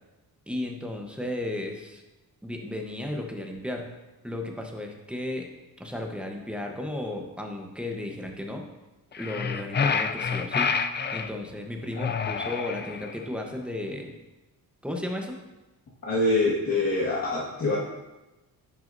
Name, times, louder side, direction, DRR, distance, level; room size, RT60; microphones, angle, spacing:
voice 1, 0.5-2.0 2.4-3.9 4.2-5.5 5.8-8.7 9.2-10.8 11.1-14.1 14.8-15.4, left 1 dB, 5° right, 2 dB, 1.0 m, -34 dB
sound 1, 9.1-11.3 12.0-13.2, left 5 dB, 30° left, 0.4 m, -28 dB
voice 2, 16.0-17.8, left 2 dB, 50° left, -8 dB, 1.8 m, -25 dB
10.5 x 6.1 x 2.7 m, 1.1 s
cardioid pair, 125°, 36 cm